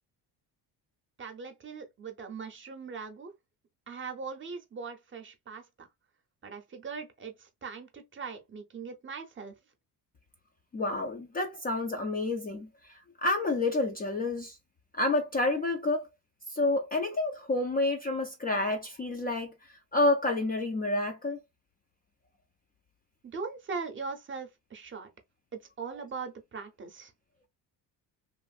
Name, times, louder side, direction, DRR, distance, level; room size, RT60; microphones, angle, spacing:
voice 1, 1.2-3.3 3.9-5.9 6.4-9.5 23.2-25.1 25.5-27.1, right 5 dB, 30° right, 0.6 m, -40 dB
voice 2, 10.7-14.6 14.9-16.1 16.5-21.4 25.9-26.0, left 2 dB, 25° left, 0.3 m, -29 dB
3.0 x 2.5 x 2.3 m
cardioid pair, 135°, 41 cm